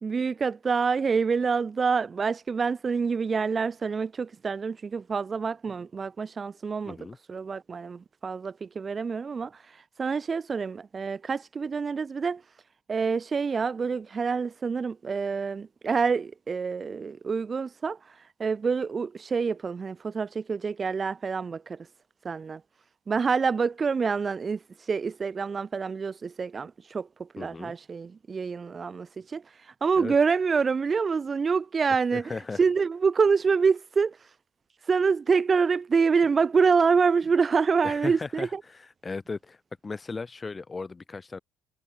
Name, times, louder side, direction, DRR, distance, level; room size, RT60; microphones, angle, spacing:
voice 1, 0.0-7.0 7.3-12.4 12.9-21.9 22.2-22.6 23.1-24.6 24.9-32.3 32.6-34.2 34.9-38.6, right 5 dB, 35° right, 4.3 m, -26 dB
voice 2, 6.9-7.2 27.4-27.7 30.0-30.2 32.1-32.6 37.8-38.5 39.0-39.6 39.8-41.4, left 4 dB, 25° left, 5.6 m, -36 dB
hypercardioid pair, 60°, 0 cm